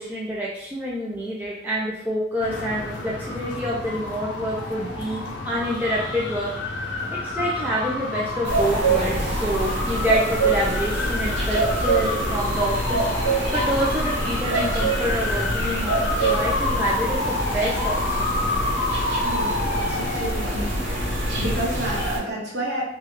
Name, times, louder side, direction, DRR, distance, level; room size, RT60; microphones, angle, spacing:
voice 1, 0.0-6.5 7.1-13.1 13.5-18.3, equal, 10° right, -6 dB, 0.4 m, -27 dB
sound 1, 2.4-22.0, left 2 dB, 80° left, 0.6 m, -28 dB
sound 2, 8.5-22.2, right 2 dB, 90° right, 0.9 m, -26 dB
voice 2, 19.2-21.0 21.3-22.8, right 1 dB, 60° right, -5 dB, 1.0 m, -30 dB
3.4 x 2.3 x 3.0 m, 0.77 s
head